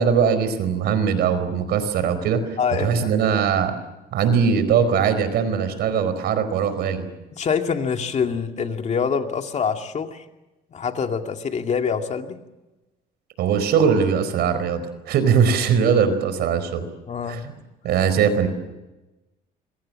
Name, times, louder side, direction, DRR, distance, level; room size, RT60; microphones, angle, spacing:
voice 1, 0.0-2.4 2.8-3.7 4.1-7.1 13.4-16.9 17.3-17.4 17.8-18.5, right 7 dB, 75° right, 11 dB, 4.7 m, -20 dB
voice 2, 2.6-3.1 7.4-10.2 10.7-12.4 17.1-17.4, left 6 dB, 40° left, 5 dB, 2.4 m, -25 dB
26.5 x 23.0 x 7.7 m, 1.0 s
cardioid pair, 110°, 17 cm